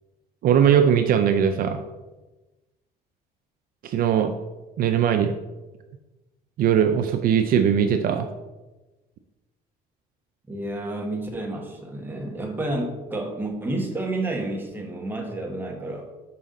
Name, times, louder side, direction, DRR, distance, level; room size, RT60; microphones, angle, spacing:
voice 1, 0.4-1.8 3.8-4.3 4.8-5.3 6.6-8.2, right 8 dB, 60° right, 7 dB, 0.4 m, -20 dB
voice 2, 10.5-16.1, right 2 dB, 10° right, 1 dB, 1.2 m, -30 dB
5.6 x 5.1 x 3.7 m, 1.1 s
cardioid pair, 110°, 17 cm